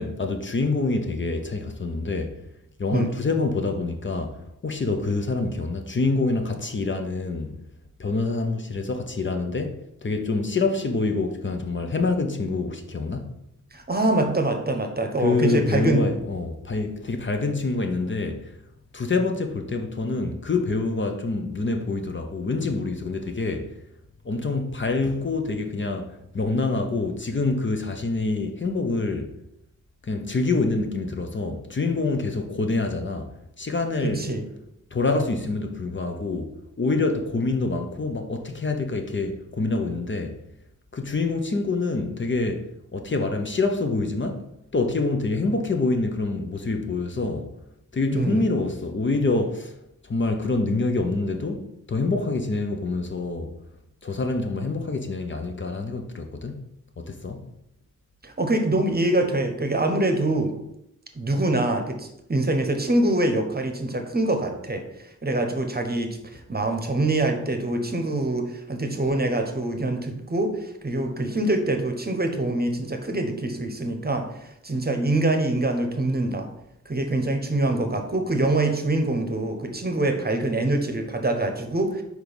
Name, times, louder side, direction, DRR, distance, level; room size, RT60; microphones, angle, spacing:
voice 1, 0.0-2.4 2.8-7.6 8.0-13.3 15.2-18.6 18.9-23.8 24.2-29.3 30.0-33.3 33.6-34.3 34.9-40.4 40.9-44.4 44.7-47.5 47.9-49.8 50.0-53.5 54.0-56.7 57.0-57.4, left 3 dB, 40° left, 0.7 m, -26 dB
voice 2, 13.7-16.0 34.0-34.4 48.1-48.4 58.2-60.5 61.1-64.8 65.2-76.5 76.9-82.0, right 2 dB, 30° right, 0.9 m, -24 dB
4.7 x 4.4 x 5.2 m
wide cardioid pair, 85°, 31 cm